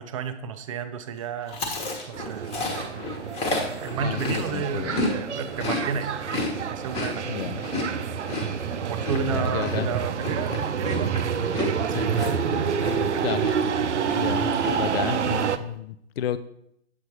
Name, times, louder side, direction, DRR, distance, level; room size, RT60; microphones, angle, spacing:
voice 1, 0.0-1.6 2.1-2.6 3.8-6.1 6.7-8.1 8.8-12.7 13.1-13.5, right 6 dB, 30° right, 9 dB, 0.5 m, -32 dB
Chewing mastication, 1.5-5.1 5.4-13.1 13.4-13.8 14.0-14.7, left 3 dB, 15° left, 1.2 m, -31 dB
sound 1, 2.1-15.6, right 7 dB, 80° right, 0.6 m, -28 dB
voice 2, 4.0-4.9 7.2-7.6 9.3-9.9 11.9-12.3 13.2-13.5 14.1-16.4, left 10 dB, 60° left, 14 dB, 0.5 m, -31 dB
8.2 x 6.3 x 3.0 m, 0.75 s
figure-of-eight pair, 125°, 35 cm